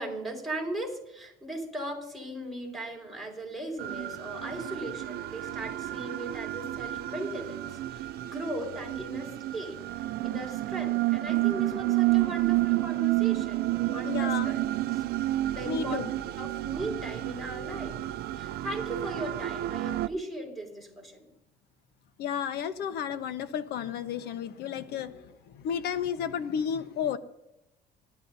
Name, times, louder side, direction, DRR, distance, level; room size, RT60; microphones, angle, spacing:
voice 1, 0.0-9.8 10.2-15.0 15.5-18.0 18.4-21.3, right 1 dB, ahead, 1 dB, 4.9 m, -38 dB
sound 1, 3.8-20.1, right 17 dB, 70° right, 0.5 m, -30 dB
voice 2, 14.0-14.5 15.6-16.1 22.2-27.2, left 8 dB, 75° left, 10 dB, 1.1 m, -32 dB
29.5 x 12.0 x 2.8 m, 0.87 s
cardioid pair, 110°, 17 cm